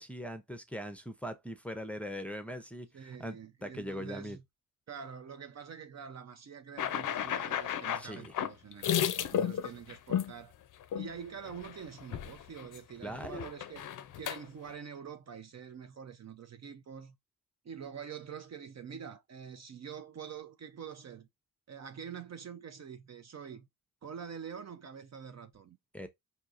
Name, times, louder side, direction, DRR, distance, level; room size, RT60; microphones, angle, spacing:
voice 1, 0.0-3.4 3.6-4.4 8.0-8.3 13.0-13.5 25.9-26.1, equal, 5° left, 0.7 m, -41 dB
voice 2, 2.9-4.4 4.9-10.5 10.9-13.9 14.2-17.2 17.6-21.3 21.7-23.7 24.0-25.8, right 7 dB, 45° right, 0.5 m, -46 dB
sound 1, 6.8-10.3 10.9-11.1 11.4-11.7 12.0-12.8 13.1-14.4, left 10 dB, 55° left, 0.5 m, -33 dB
4.5 x 2.8 x 2.5 m
cardioid pair, 70°, 38 cm